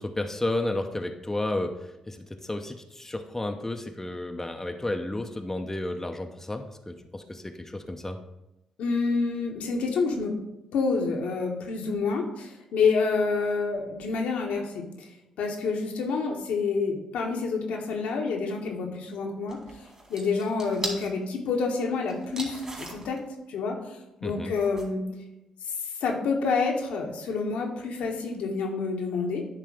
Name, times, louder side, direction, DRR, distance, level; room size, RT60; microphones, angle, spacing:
voice 1, 0.0-8.2 24.2-24.5, left 2 dB, 15° left, 4 dB, 0.8 m, -32 dB
voice 2, 8.8-10.3 10.7-15.1 15.4-19.6 20.1-23.2 23.5-25.0 25.6-29.5, left 4 dB, 70° left, 1 dB, 1.1 m, -28 dB
sound 1, 19.5-21.1 22.1-23.2 24.5-24.8, right 1 dB, 25° right, 2.5 m, -38 dB
10.0 x 3.3 x 4.9 m, 0.92 s
hypercardioid pair, 40°, 2 cm